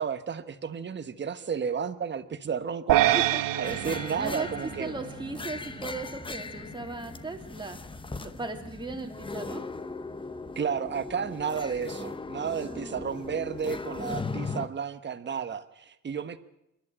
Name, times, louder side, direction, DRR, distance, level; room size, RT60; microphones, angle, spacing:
voice 1, 0.0-3.2 3.6-4.9 10.6-16.4, right 7 dB, 35° right, 11 dB, 1.2 m, -32 dB
voice 2, 2.9-3.8 4.1-7.8 8.2-9.7 12.3-13.0, right 3 dB, 15° right, 3 dB, 2.7 m, -38 dB
sound 1, 2.9-5.4, right 14 dB, 90° right, 0.8 m, -26 dB
sound 2, 3.6-14.7, left 3 dB, 15° left, 0.8 m, -38 dB
26.5 x 11.5 x 8.8 m, 0.87 s
cardioid pair, 125°, 33 cm